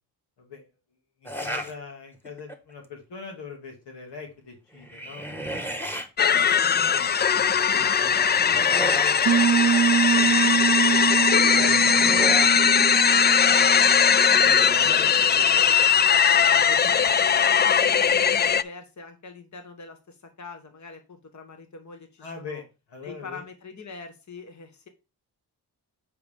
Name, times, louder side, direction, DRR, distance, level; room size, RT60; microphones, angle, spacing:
voice 1, 1.2-5.9 6.7-9.2 9.8-11.2 11.5-12.5 12.9-14.0 14.4-16.0 16.5-16.9 22.2-22.6 22.9-23.4, left 4 dB, 85° left, 2 dB, 2.5 m, -42 dB
sound 1, 1.3-1.7 2.3-2.7 4.7-6.1 7.8-9.3 11.2-12.6, equal, 5° left, 1.5 m, -34 dB
sound 2, 6.2-18.6, left 7 dB, 25° left, 0.3 m, -20 dB
sound 3, 9.3-14.8, right 8 dB, 40° right, 0.5 m, -25 dB
voice 2, 16.9-22.6 23.0-24.9, left 4 dB, 45° left, 6 dB, 1.5 m, -42 dB
8.0 x 4.9 x 3.6 m, 0.29 s
cardioid pair, 60°, 41 cm